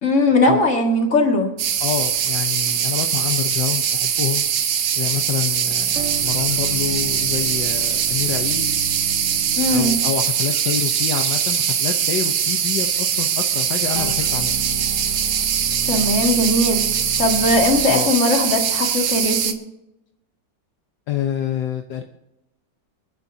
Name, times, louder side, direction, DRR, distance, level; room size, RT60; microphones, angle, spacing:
voice 1, 0.0-1.5 9.6-10.0 15.9-16.8 17.2-19.6, left 1 dB, 40° left, 1 dB, 2.3 m, -19 dB
sound 1, 1.6-19.5, right 8 dB, 70° right, 1.5 m, -22 dB
voice 2, 1.8-4.4 5.0-8.7 9.5-14.5 17.4-18.1 21.1-22.0, left 10 dB, 75° left, 4 dB, 1.5 m, -27 dB
sound 2, 5.9-10.4 13.9-18.1, right 4 dB, 45° right, 1.4 m, -33 dB
28.5 x 9.9 x 2.7 m, 0.87 s
omnidirectional pair, 2.0 m